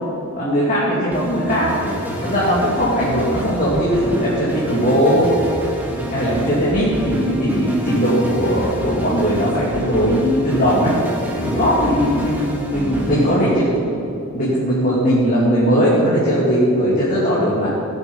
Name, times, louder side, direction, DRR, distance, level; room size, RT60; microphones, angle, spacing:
voice 1, 0.4-1.7 2.2-5.3 6.1-10.9 11.3-14.0 14.3-17.7, equal, 40° left, -8 dB, 2.5 m, -18 dB
sound 1, 1.1-14.0, equal, 10° right, 1.9 m, -28 dB
17.0 x 7.6 x 5.5 m, 2.7 s
head